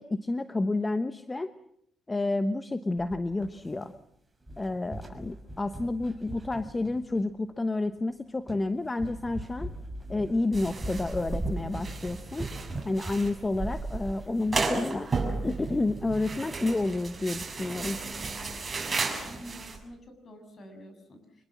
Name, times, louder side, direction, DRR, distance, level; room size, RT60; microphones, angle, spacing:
voice 1, 0.0-1.5 2.1-3.9 4.6-9.7 10.1-12.5 12.8-15.1 15.4-18.0, left 2 dB, 20° left, 11 dB, 1.1 m, -30 dB
sound 1, 3.0-4.1 4.4-7.4 8.0-8.1 8.5-8.7 9.0-15.1 15.3-15.4 15.7-15.8 16.2-16.4 16.8-16.9 17.2-17.5 17.8-18.8, right 1 dB, 10° right, 6.4 m, -41 dB
sound 2, 10.5-19.8, right 4 dB, 30° right, 6.4 m, -34 dB
voice 2, 19.2-21.4, equal, 45° left, 7 dB, 7.3 m, -48 dB
25.5 x 21.5 x 7.5 m, 0.72 s
cardioid pair, 90°, 0 cm